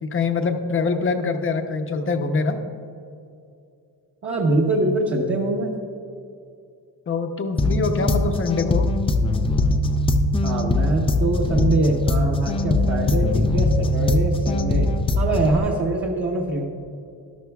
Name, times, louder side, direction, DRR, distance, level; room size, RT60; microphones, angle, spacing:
voice 1, 0.0-2.6 7.1-8.9, left 4 dB, 30° left, 6 dB, 0.8 m, -24 dB
voice 2, 4.2-5.7 10.4-14.9 15.1-16.6, right 2 dB, 30° right, -2 dB, 1.0 m, -23 dB
sound 1, 7.6-15.6, left 2 dB, 15° left, 0.3 m, -21 dB
12.5 x 12.0 x 2.3 m, 2.5 s
cardioid pair, 140°, 42 cm